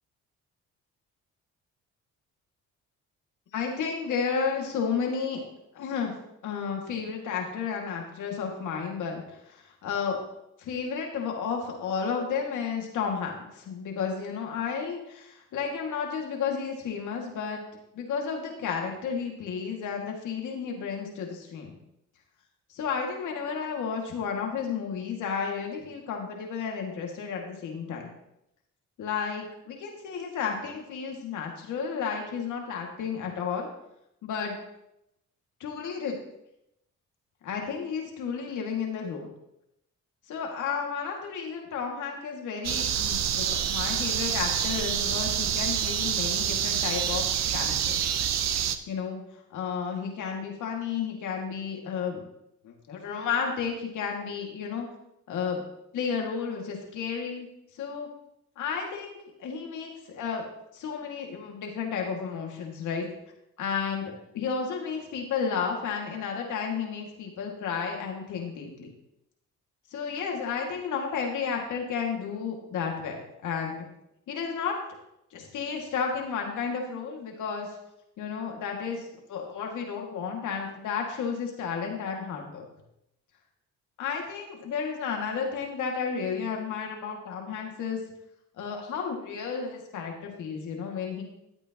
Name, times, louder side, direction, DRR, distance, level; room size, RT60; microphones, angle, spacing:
voice 1, 3.5-5.4 5.7-6.2 6.4-10.2 10.6-17.6 17.9-21.7 22.7-28.1 29.0-33.7 34.2-34.6 35.6-36.2 37.4-39.3 40.3-47.3 47.5-48.0 48.6-49.2 49.5-52.2 52.6-54.9 55.3-55.6 55.9-57.5 57.7-58.1 58.6-60.4 60.7-63.1 63.6-68.9 69.9-73.9 74.3-74.7 75.3-77.7 78.2-82.6 84.0-88.0 88.6-91.2, left 6 dB, 80° left, 1 dB, 2.2 m, -32 dB
sound 1, 42.6-48.8, right 9 dB, 60° right, 0.8 m, -27 dB
13.5 x 8.4 x 3.0 m, 0.82 s
cardioid pair, 90°, 30 cm